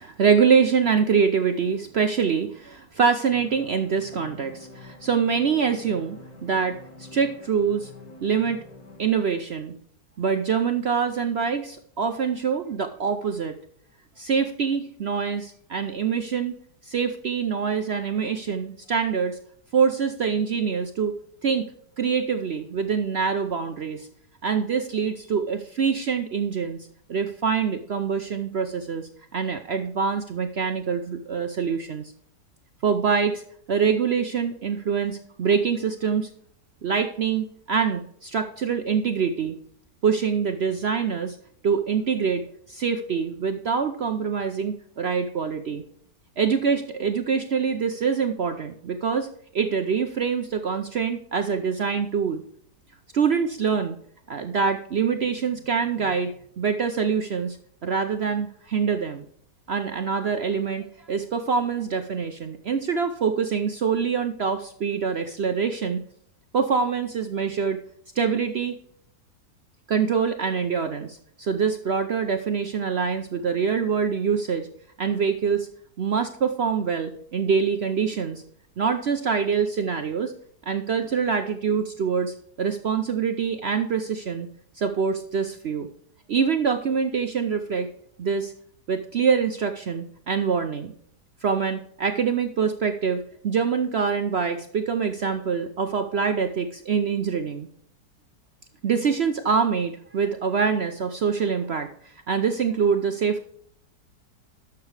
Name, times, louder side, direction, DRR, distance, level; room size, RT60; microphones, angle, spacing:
voice 1, 0.0-6.2 6.4-7.9 8.2-8.6 9.0-9.7 10.2-13.5 14.2-16.6 16.8-19.4 19.7-21.1 21.4-21.6 22.0-24.1 24.4-32.1 32.8-33.4 33.7-36.3 36.8-39.5 40.0-41.4 41.6-42.4 42.7-45.8 46.4-49.3 49.5-52.4 53.1-54.0 54.3-57.6 57.8-59.2 59.7-66.0 66.5-67.8 68.2-68.8 69.9-74.7 75.0-75.7 76.0-78.4 78.8-80.3 80.7-84.5 84.8-85.9 86.3-87.9 88.2-88.5 88.9-90.9 91.4-97.7 98.8-103.5, right 6 dB, 65° right, 7 dB, 0.6 m, -25 dB
sound 1, 3.3-9.1, left 2 dB, 60° left, 2.1 m, -46 dB
11.5 x 6.8 x 3.3 m, 0.65 s
omnidirectional pair, 1.9 m